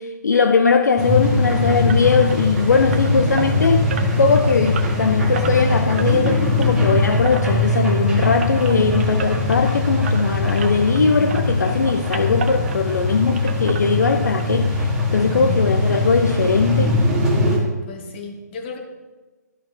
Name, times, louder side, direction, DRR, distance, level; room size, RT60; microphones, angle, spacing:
voice 1, 0.0-3.8 4.2-17.0, left 5 dB, 70° left, 7 dB, 0.6 m, -19 dB
sound 1, 1.0-17.6, left 2 dB, 10° right, 1.4 m, -21 dB
sound 2, 1.9-11.0 11.3-13.1 13.3-14.5 14.7-14.8 15.3-15.4 15.7-15.8, right 5 dB, 40° right, 0.8 m, -34 dB
voice 2, 15.2-15.7 17.9-18.8, left 2 dB, 35° left, 2 dB, 1.4 m, -33 dB
12.5 x 5.9 x 2.6 m, 1.3 s
figure-of-eight pair, 140°, 10 cm